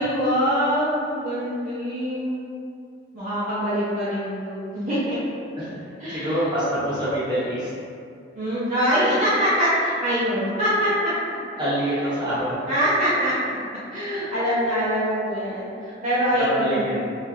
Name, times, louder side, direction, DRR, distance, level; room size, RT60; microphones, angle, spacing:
voice 1, 0.0-2.4 3.1-5.2 6.0-6.5 8.3-11.1 11.8-12.0 12.7-13.3 13.9-16.8, equal, 40° right, -13 dB, 0.7 m, -24 dB
voice 2, 6.1-7.7 11.6-12.7 16.6-17.0, right 1 dB, 25° right, -11 dB, 1.0 m, -25 dB
2.9 x 2.4 x 2.9 m, 2.4 s
head